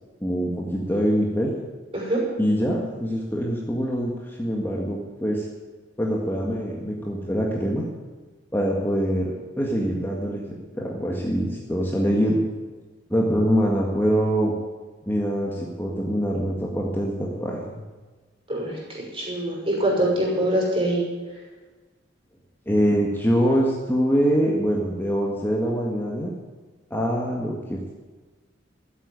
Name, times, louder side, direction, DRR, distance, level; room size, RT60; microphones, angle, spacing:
voice 1, 0.2-1.5 2.4-5.5 6.0-7.8 8.5-10.4 10.7-12.4 13.1-14.5 15.1-17.8 22.7-26.3 26.9-27.9, equal, 10° left, -2 dB, 1.8 m, -24 dB
voice 2, 18.5-21.0, right 1 dB, 30° right, -3 dB, 6.0 m, -24 dB
14.0 x 8.4 x 9.5 m, 1.3 s
head